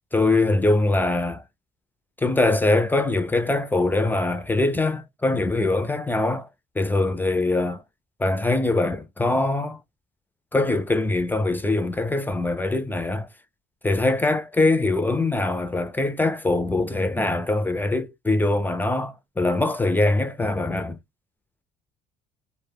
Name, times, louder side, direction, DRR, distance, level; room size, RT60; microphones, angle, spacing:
voice 1, 0.1-1.4 2.2-6.5 6.8-7.8 8.2-9.8 10.5-13.3 13.8-21.0, left 2 dB, 10° left, 0.3 m, -23 dB
2.2 x 2.1 x 3.2 m
cardioid pair, 110°, 17 cm